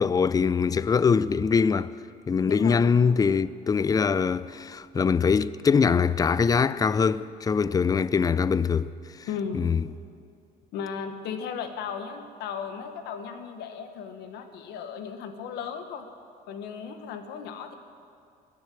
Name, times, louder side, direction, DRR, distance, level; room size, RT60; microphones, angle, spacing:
voice 1, 0.0-1.9 2.3-8.9 9.5-9.8, left 5 dB, 20° left, 0.4 m, -23 dB
voice 2, 2.5-2.8 9.3-9.8 10.7-16.1 16.5-17.8, left 6 dB, 85° left, 1.3 m, -36 dB
20.5 x 7.4 x 7.7 m
cardioid pair, 110°, 17 cm